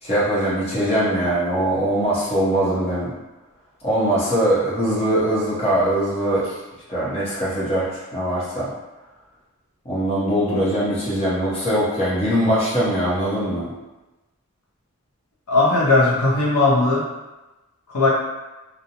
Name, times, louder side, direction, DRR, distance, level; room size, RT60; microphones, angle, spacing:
voice 1, 0.0-3.1 3.8-6.5 6.9-7.9 8.1-8.7 9.8-13.7, right 1 dB, 25° left, -8 dB, 0.8 m, -21 dB
voice 2, 15.5-17.0 17.9-18.1, left 2 dB, 75° left, -5 dB, 0.5 m, -17 dB
2.5 x 2.1 x 2.8 m, 1.1 s
head